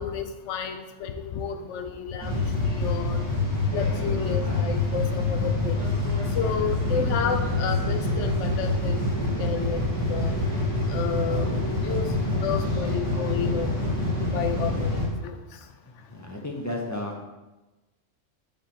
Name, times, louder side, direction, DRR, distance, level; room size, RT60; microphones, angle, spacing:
voice 1, 0.0-3.3 3.7-5.9 6.3-9.0 9.4-9.8 10.1-10.5 10.7-11.5 11.8-13.9 14.2-14.9 15.2-15.4, left 6 dB, 70° left, 7 dB, 0.9 m, -31 dB
sound 1, 2.2-15.0, left 2 dB, 5° left, 2.0 m, -26 dB
voice 2, 3.9-4.4 6.9-7.0 12.2-12.8 14.6-14.7 15.8-17.2, left 2 dB, 25° left, 0 dB, 0.4 m, -35 dB
5.5 x 4.5 x 4.3 m, 1.1 s
omnidirectional pair, 1.3 m